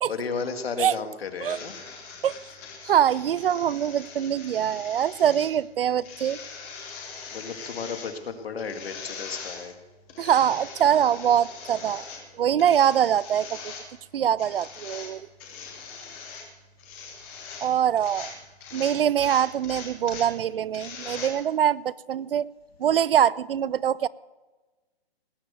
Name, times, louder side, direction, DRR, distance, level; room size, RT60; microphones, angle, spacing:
voice 1, 0.1-1.7 7.3-9.8 12.3-12.5 15.5-16.2, left 5 dB, 70° left, 6 dB, 2.1 m, -34 dB
sound 1, 1.5-21.3, left 5 dB, 5° left, 0.5 m, -42 dB
voice 2, 2.8-6.4 10.2-12.0 12.3-13.7 14.1-15.3 17.6-18.3 18.7-22.5 22.8-24.1, right 9 dB, 60° right, 21 dB, 0.5 m, -23 dB
18.5 x 8.6 x 6.8 m, 1.3 s
hypercardioid pair, 160°, 31 cm